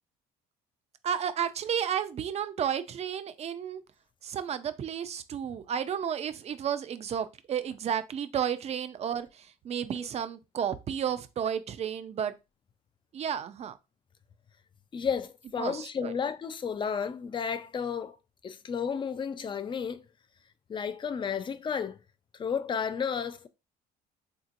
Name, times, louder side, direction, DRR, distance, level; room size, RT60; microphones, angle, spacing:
voice 1, 1.0-3.8 4.2-12.3 13.1-13.8 15.6-16.1, right 8 dB, 40° right, 0.4 m, -32 dB
voice 2, 14.9-18.2 18.4-20.0 20.7-22.0 22.4-23.5, left 6 dB, 30° left, 0.4 m, -32 dB
3.6 x 2.7 x 2.5 m
cardioid pair, 110°, 17 cm